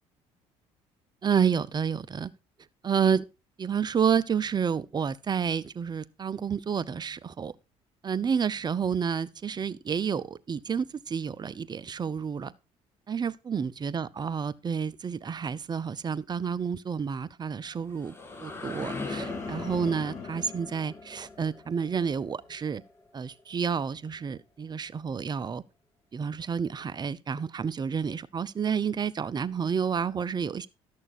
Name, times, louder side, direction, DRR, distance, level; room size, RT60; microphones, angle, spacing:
voice 1, 1.2-2.3 2.8-3.2 3.6-7.5 8.0-12.5 13.1-18.1 18.4-22.8 23.1-25.6 26.1-30.7, right 6 dB, 30° right, 0.6 m, -30 dB
sound 1, 17.6-23.4, left 2 dB, 15° left, 2.1 m, -41 dB
sound 2, 18.1-21.6 22.0-22.4, left 7 dB, 60° left, 2.7 m, -44 dB
12.5 x 6.5 x 4.1 m
supercardioid pair, 80°, 13 cm